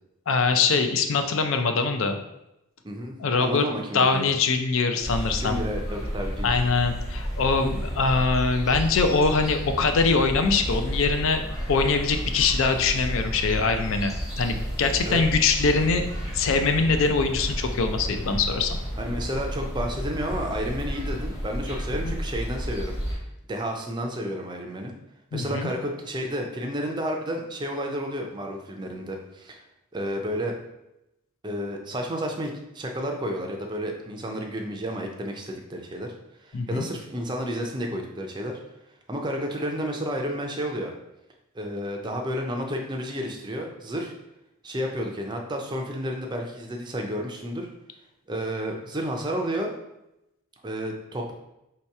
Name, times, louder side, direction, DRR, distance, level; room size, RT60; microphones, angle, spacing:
voice 1, 0.3-2.2 3.2-3.7 3.9-5.6 6.4-16.0 16.3-18.8 22.0-22.1 25.3-25.7 36.5-36.8, left 4 dB, 60° left, 7 dB, 0.4 m, -23 dB
voice 2, 2.8-4.3 5.4-6.6 15.0-15.2 19.0-22.9 23.5-24.9 25.3-29.6 29.9-30.5 31.4-36.1 36.4-38.6 39.1-40.9 41.5-44.1 44.6-47.7 48.3-49.7 50.6-51.3, equal, 20° right, 2 dB, 0.5 m, -31 dB
sound 1, 5.0-23.2, equal, 15° left, 0.8 m, -31 dB
3.2 x 2.8 x 4.6 m, 0.88 s
head